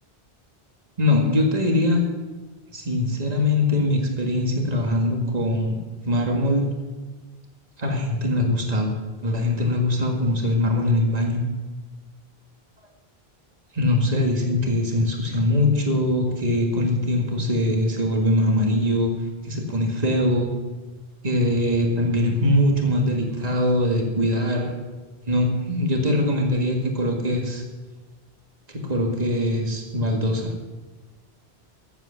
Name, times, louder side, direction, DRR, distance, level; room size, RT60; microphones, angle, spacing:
voice 1, 1.0-2.0 2.7-5.8 6.0-6.7 7.8-8.9 9.2-11.4 13.7-19.1 19.4-20.5 21.2-24.8 25.3-27.6 28.7-30.5, left 1 dB, 40° right, 2 dB, 1.9 m, -22 dB
14.0 x 8.0 x 7.0 m, 1.3 s
omnidirectional pair, 1.0 m